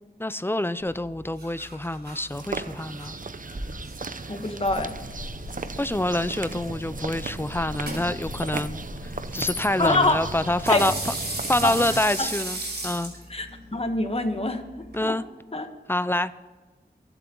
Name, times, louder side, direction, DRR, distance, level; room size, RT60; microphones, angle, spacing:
voice 1, 0.2-3.2 5.8-8.8 9.3-10.9 11.5-13.1 14.9-15.2 15.9-16.3, left 1 dB, 15° left, 14 dB, 0.6 m, -26 dB
sound 1, 0.8-15.0, right 1 dB, 75° right, 4.9 m, -38 dB
sound 2, 2.3-12.0, right 4 dB, 55° right, 0.8 m, -36 dB
voice 2, 4.3-4.9 9.8-10.2 10.7-10.9 11.6-11.8 12.2-12.3 13.3-13.5 13.7-15.1 15.5-15.7, left 2 dB, 35° left, 6 dB, 1.5 m, -25 dB
sound 3, 4.6-12.2, left 3 dB, 70° left, 1.4 m, -40 dB
22.5 x 8.2 x 3.9 m, 1.3 s
wide cardioid pair, 55°, 17 cm